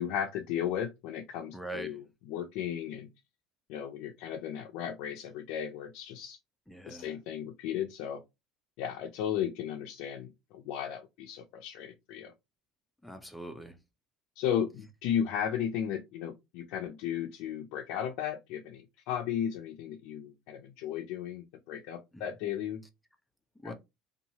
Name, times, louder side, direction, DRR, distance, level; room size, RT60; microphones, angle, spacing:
voice 1, 0.0-3.1 3.7-6.4 6.9-8.2 8.8-12.3 14.4-22.8 23.6-23.7, left 9 dB, 75° left, 0.4 m, -35 dB
voice 2, 1.5-2.0 6.7-7.1 13.0-13.8 22.1-22.2 23.6-23.7, right 1 dB, 5° left, 0.5 m, -42 dB
2.8 x 2.3 x 2.8 m
cardioid pair, 130°, 0 cm